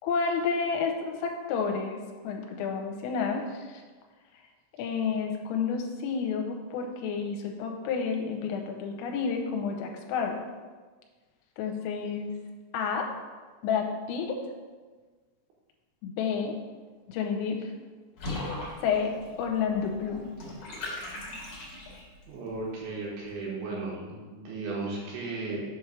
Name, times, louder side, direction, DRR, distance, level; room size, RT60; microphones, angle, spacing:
voice 1, 0.0-2.0 2.2-3.8 4.8-10.4 11.6-12.3 12.7-13.1 13.6-14.4 16.0-16.6 17.1-17.6 18.8-19.1 19.4-20.3, left 6 dB, 90° left, 2 dB, 3.3 m, -30 dB
Water / Bathtub (filling or washing), 18.2-22.2, left 2 dB, 60° left, 1.6 m, -39 dB
voice 2, 22.3-25.6, right 3 dB, 75° right, -4 dB, 3.2 m, -35 dB
7.8 x 3.2 x 6.2 m, 1.4 s
omnidirectional pair, 5.9 m